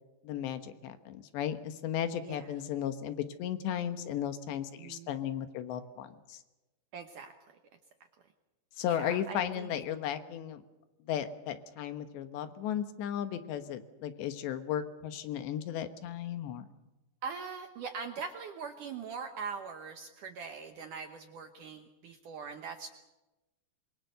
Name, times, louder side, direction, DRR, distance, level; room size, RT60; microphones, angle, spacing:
voice 1, 0.2-6.4 8.8-10.6 11.1-16.7, left 10 dB, 80° left, 10 dB, 3.5 m, -35 dB
voice 2, 2.2-2.5 4.8-5.1 6.9-7.3 8.8-9.7 17.2-22.9, right 5 dB, 70° right, 6 dB, 2.0 m, -42 dB
25.5 x 22.5 x 6.8 m, 1.1 s
omnidirectional pair, 5.1 m